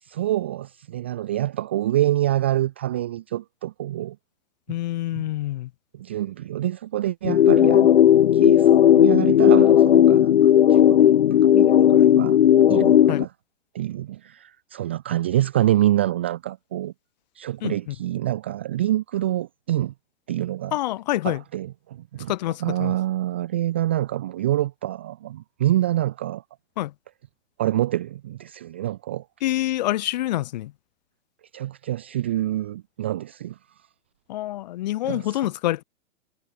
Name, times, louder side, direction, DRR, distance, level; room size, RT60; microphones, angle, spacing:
voice 1, 0.0-4.2 4.7-4.8 5.1-5.2 5.9-11.1 11.4-12.4 12.7-13.3 13.7-16.9 17.4-19.9 20.3-20.8 21.2-22.3 22.6-26.4 27.6-29.3 31.5-33.6 35.0-35.5, right 13 dB, 10° right, 0.5 m, -26 dB
voice 2, 4.7-5.7 13.1-13.2 17.6-17.9 20.7-21.4 22.3-22.9 26.8-26.9 29.4-30.7 34.3-35.8, left 15 dB, 35° left, 3.1 m, -26 dB
sound 1, 7.2-13.2, left 10 dB, 55° left, 2.1 m, -15 dB
hypercardioid pair, 175°, 38 cm